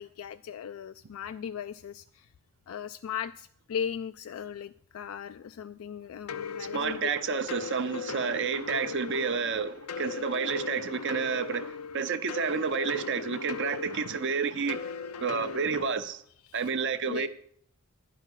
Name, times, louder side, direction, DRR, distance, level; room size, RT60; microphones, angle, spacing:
voice 1, 0.0-2.3 2.7-7.4 16.4-16.7 17.1-17.3, left 8 dB, 65° left, 0.3 m, -38 dB
sound 1, 6.3-15.9, left 5 dB, 90° left, 0.7 m, -38 dB
voice 2, 6.7-14.8 15.2-16.2 16.5-17.3, right 6 dB, 55° right, 0.6 m, -30 dB
10.5 x 5.8 x 8.2 m
head